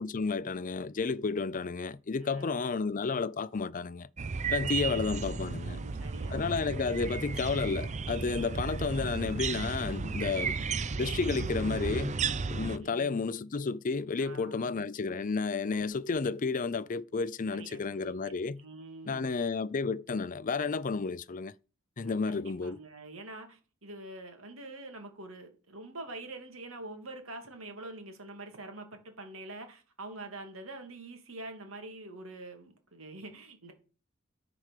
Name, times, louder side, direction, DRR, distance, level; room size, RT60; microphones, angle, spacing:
voice 1, 0.0-4.1 4.5-5.8 6.3-10.6 11.0-12.2 12.5-18.6 19.1-21.5 22.0-22.8, left 4 dB, 40° left, 0.5 m, -32 dB
voice 2, 2.2-2.7 4.9-5.2 5.6-6.8 12.8-13.4 14.2-14.9 17.5-18.3 18.6-19.3 22.0-33.7, right 2 dB, 75° right, 2.5 m, -46 dB
sound 1, 4.2-12.8, right 4 dB, 35° right, 0.5 m, -34 dB
13.5 x 4.9 x 6.6 m
head